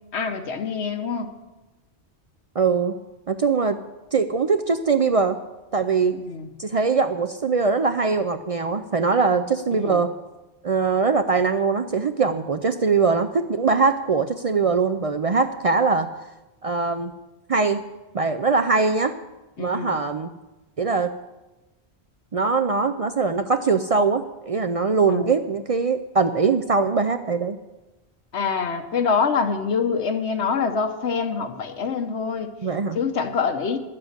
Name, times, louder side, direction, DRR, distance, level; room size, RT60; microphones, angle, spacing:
voice 1, 0.1-1.3 6.1-6.5 9.7-10.0 19.6-20.0 25.1-25.3 28.3-32.5 32.9-33.8, left 5 dB, 90° left, 7 dB, 1.3 m, -25 dB
voice 2, 2.6-2.9 3.3-3.8 4.1-5.4 5.7-6.1 6.6-10.1 10.6-16.1 16.6-17.1 17.5-17.8 18.1-19.1 19.6-20.3 20.8-21.1 22.3-27.6 32.6-33.0, right 4 dB, 50° right, 8 dB, 0.4 m, -22 dB
11.5 x 7.5 x 8.0 m, 1.1 s
omnidirectional pair, 1.1 m